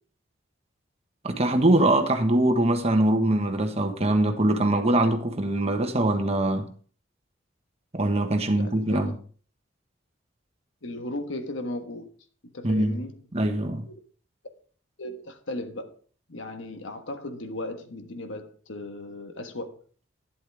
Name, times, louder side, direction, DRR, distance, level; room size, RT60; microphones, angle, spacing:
voice 1, 1.2-6.7 7.9-9.1 12.6-13.0 13.3-13.8, right 1 dB, 35° right, 1.4 m, -23 dB
voice 2, 8.6-9.2 10.8-12.1 12.5-13.2 13.8-13.9 15.0-15.9 16.3-19.8, left 1 dB, 80° left, 1.4 m, -36 dB
12.0 x 10.5 x 3.5 m
head